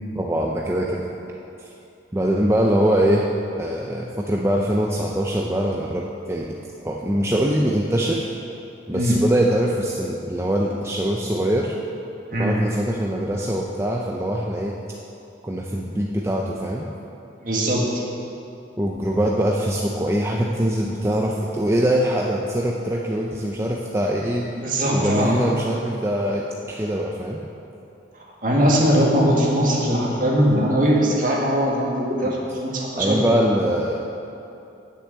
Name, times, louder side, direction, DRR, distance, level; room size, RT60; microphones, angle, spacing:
voice 1, 0.2-1.0 1.6-1.7 2.1-3.3 3.6-6.5 6.8-8.3 8.9-11.8 12.4-14.8 15.4-16.9 18.8-24.4 24.9-27.4 32.2-32.3 33.0-34.0, equal, 15° right, -2 dB, 0.5 m, -23 dB
voice 2, 17.4-18.0 24.5-25.4 28.4-33.2, equal, 45° right, -3 dB, 1.9 m, -20 dB
9.2 x 6.9 x 7.9 m, 2.8 s
head